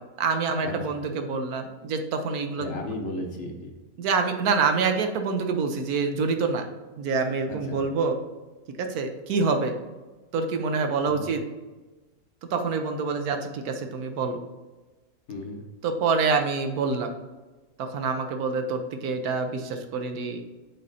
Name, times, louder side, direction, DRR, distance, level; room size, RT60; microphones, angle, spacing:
voice 1, 0.2-2.7 4.0-6.6 7.0-8.2 8.8-9.7 10.3-11.4 12.5-14.4 15.8-17.1 17.8-20.4, right 4 dB, 85° right, 6 dB, 1.3 m, -26 dB
voice 2, 2.6-3.7 7.5-7.8 11.0-11.3 15.3-15.6, left 1 dB, 55° left, 1 dB, 1.2 m, -34 dB
7.4 x 4.2 x 4.0 m, 1.2 s
omnidirectional pair, 1.5 m